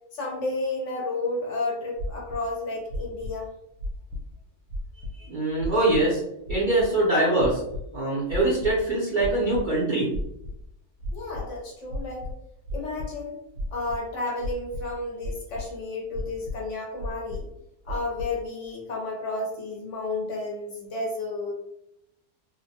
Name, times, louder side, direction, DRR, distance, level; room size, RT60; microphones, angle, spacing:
voice 1, 0.1-3.5 11.1-12.3 12.7-13.4 13.7-17.5 17.8-21.5, left 2 dB, 60° left, -2 dB, 0.9 m, -32 dB
sound 1, 2.0-2.4 2.9-3.3 3.8-4.3 4.7-5.1 5.6-6.0 6.5-6.9 7.4-7.8 8.3-8.8 9.2-9.7 10.1-10.6 11.0-11.4 11.9-13.1 13.5-14.0 14.4-14.9 15.2-15.7 16.1-16.6 17.0-17.5 17.9-18.3, left 1 dB, 85° right, 1.1 m, -33 dB
voice 2, 5.1-6.2 6.5-7.6 7.9-10.1, right 2 dB, 50° right, -8 dB, 0.6 m, -23 dB
2.7 x 2.1 x 2.7 m, 0.81 s
omnidirectional pair, 1.6 m